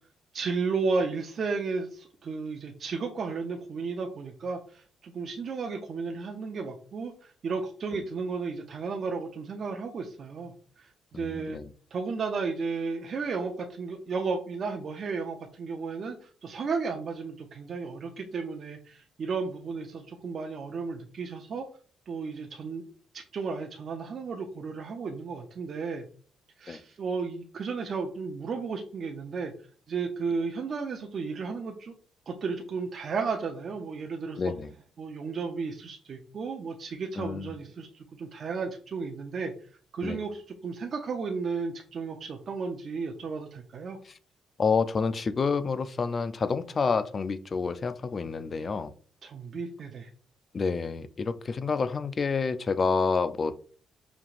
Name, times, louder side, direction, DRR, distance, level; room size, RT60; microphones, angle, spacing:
voice 1, 0.3-10.9 11.1-11.6 11.9-21.7 22.1-22.8 23.1-26.1 26.6-29.5 29.9-31.9 32.3-34.4 35.0-39.5 39.9-44.0 49.2-50.1, right 4 dB, 50° right, 2 dB, 0.5 m, -33 dB
voice 2, 11.1-11.7 26.7-26.8 34.4-34.7 37.2-37.5 40.0-40.2 44.0-44.1 44.6-48.9 50.5-53.6, left 5 dB, 40° left, 14 dB, 0.3 m, -28 dB
5.2 x 2.8 x 2.5 m, 0.43 s
cardioid pair, 90°, 0 cm